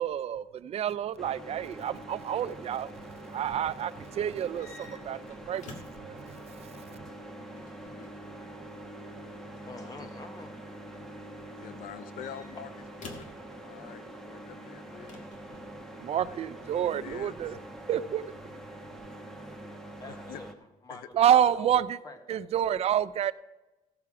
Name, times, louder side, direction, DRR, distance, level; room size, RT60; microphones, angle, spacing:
voice 1, 0.0-2.9 3.3-5.2 5.5-6.3 6.6-6.9 16.0-17.6 17.9-18.3 21.1-22.0 22.3-23.3, right 10 dB, 45° right, 14 dB, 0.4 m, -28 dB
sound 1, 1.2-20.5, right 1 dB, 5° left, 1.1 m, -45 dB
sound 2, 4.5-6.1 7.4-8.2 9.6-10.0 11.8-13.4 15.1-15.7, left 3 dB, 60° left, 1.9 m, -49 dB
voice 2, 9.7-10.5 16.7-17.0 20.0-20.5 20.8-22.4, left 2 dB, 25° left, 6 dB, 1.4 m, -46 dB
voice 3, 11.6-12.7 13.0-13.4 13.6-15.2 16.1-16.4 16.8-17.3 20.1-20.4 20.9-21.0, left 10 dB, 85° left, 15 dB, 0.6 m, -46 dB
15.5 x 6.8 x 4.8 m, 1.1 s
cardioid pair, 145°, 15 cm